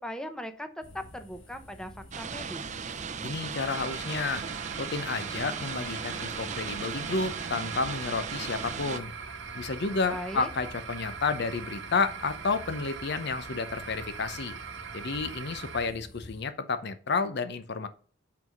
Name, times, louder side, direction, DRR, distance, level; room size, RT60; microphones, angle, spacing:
voice 1, 0.0-2.7 10.1-10.5, equal, 5° left, 8 dB, 0.7 m, -39 dB
sound 1, 0.8-16.4, left 1 dB, 75° left, 1.8 m, -49 dB
sound 2, 2.1-9.0, right 6 dB, 40° right, 0.5 m, -37 dB
voice 2, 3.1-4.4 4.8-9.1 9.5-14.6 14.9-17.9, left 4 dB, 60° left, 11 dB, 0.7 m, -31 dB
sound 3, 3.6-15.9, right 6 dB, 70° right, 0.8 m, -42 dB
6.0 x 4.6 x 5.2 m, 0.43 s
head